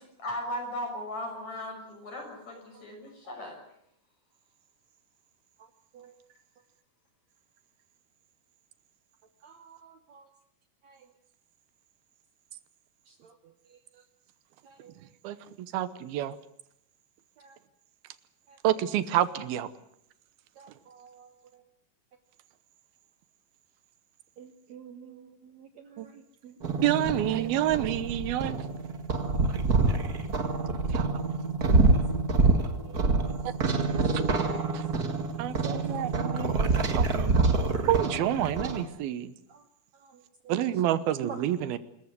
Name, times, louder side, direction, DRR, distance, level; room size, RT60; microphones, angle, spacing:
voice 1, 0.0-3.6, left 1 dB, 50° left, 7.4 m, -37 dB
voice 2, 9.4-10.3 10.8-11.1 13.1-13.8 14.6-14.9 17.4-17.6 18.5-18.6 20.6-21.6 24.4-26.6 31.9-32.0 32.3-33.4 33.8-34.0 35.9-36.3 39.5-39.6 40.0-40.6 41.0-41.4, right 7 dB, 60° right, 2.0 m, -50 dB
voice 3, 15.7-16.4 18.6-19.7 26.0-26.1 26.8-28.6 30.9-31.0 34.7-34.8 35.4-37.4 37.9-39.3 40.5-41.8, right 12 dB, 85° right, 2.9 m, -28 dB
sound 1, 26.6-38.9, right 3 dB, 40° right, 1.4 m, -26 dB
26.0 x 14.5 x 9.6 m
omnidirectional pair, 4.3 m